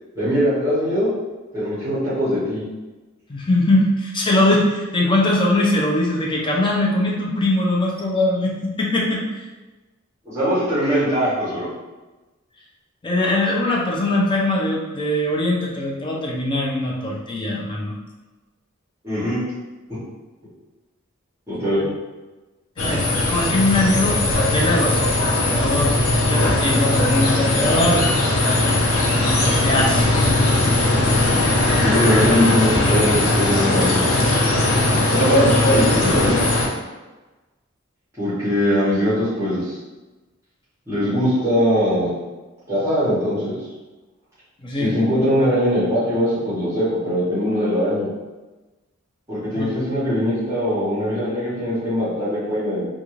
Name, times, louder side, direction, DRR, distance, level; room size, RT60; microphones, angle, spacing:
voice 1, 0.1-1.1 1.5-2.6 10.3-11.7 19.0-19.4 19.9-20.0 21.5-21.8 31.8-34.5 35.1-36.4 38.2-39.8 40.9-42.1 42.7-43.6 44.7-48.1 49.3-52.9, equal, 15° right, -13 dB, 0.9 m, -21 dB
voice 2, 3.3-9.2 13.0-17.9 22.8-25.9 26.2-28.5 29.1-30.1 44.6-44.9 49.5-49.8, left 1 dB, 25° left, -3 dB, 0.5 m, -21 dB
sound 1, 22.8-36.7, left 2 dB, 90° left, 0.5 m, -19 dB
2.5 x 2.3 x 3.0 m, 1.2 s
head